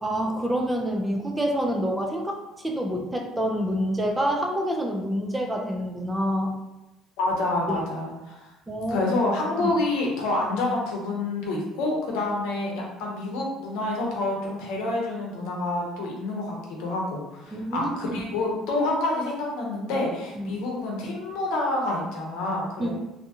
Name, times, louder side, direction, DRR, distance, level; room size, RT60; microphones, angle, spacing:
voice 1, 0.0-6.5 7.7-7.8 8.7-9.1 9.6-9.7 17.5-18.2 20.4-20.5 22.8-22.9, equal, 15° right, 2 dB, 0.4 m, -27 dB
voice 2, 7.2-8.5 8.9-22.9, left 2 dB, 85° left, -1 dB, 0.7 m, -28 dB
2.6 x 2.2 x 2.7 m, 0.98 s
cardioid pair, 100°, 0 cm